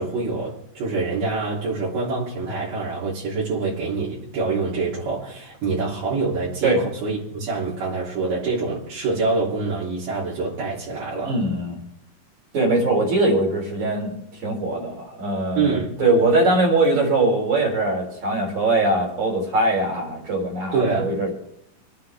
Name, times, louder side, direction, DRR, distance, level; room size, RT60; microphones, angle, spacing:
voice 1, 0.0-11.3 15.6-16.0 20.7-21.1, right 3 dB, 80° right, -8 dB, 4.9 m, -25 dB
voice 2, 11.2-11.8 12.5-14.1 14.4-21.3, right 2 dB, 60° right, -1 dB, 5.2 m, -21 dB
26.5 x 9.4 x 3.5 m, 0.77 s
omnidirectional pair, 3.8 m